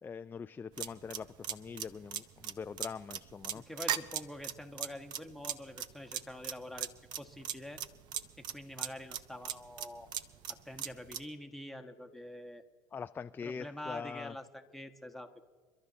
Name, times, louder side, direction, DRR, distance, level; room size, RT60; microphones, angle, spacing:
voice 1, 0.0-3.6 12.9-14.3, left 6 dB, 20° left, 11 dB, 0.4 m, -43 dB
sound 1, 0.8-11.3, right 10 dB, 55° right, 0.7 m, -38 dB
voice 2, 3.5-6.9 7.2-7.8 8.4-10.1 10.5-12.6 13.4-15.4, left 1 dB, ahead, 4 dB, 1.2 m, -46 dB
28.5 x 12.0 x 2.9 m, 1.5 s
supercardioid pair, 85°, 9 cm